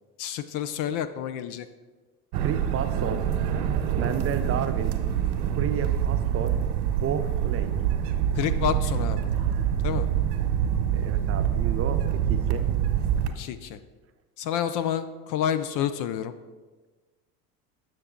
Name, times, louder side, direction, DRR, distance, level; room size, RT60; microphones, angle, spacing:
voice 1, 0.2-1.7 8.4-9.2 9.8-10.1 13.4-13.8 14.4-16.3, left 9 dB, 45° left, 11 dB, 0.5 m, -29 dB
sound 1, 2.3-13.3, right 9 dB, 60° right, 1.0 m, -25 dB
voice 2, 2.4-3.3 4.0-5.0 5.5-6.6 7.0-7.7 10.9-12.7, right 7 dB, 30° right, 8 dB, 0.5 m, -32 dB
7.8 x 5.9 x 3.7 m, 1.3 s
hypercardioid pair, 80°, 47 cm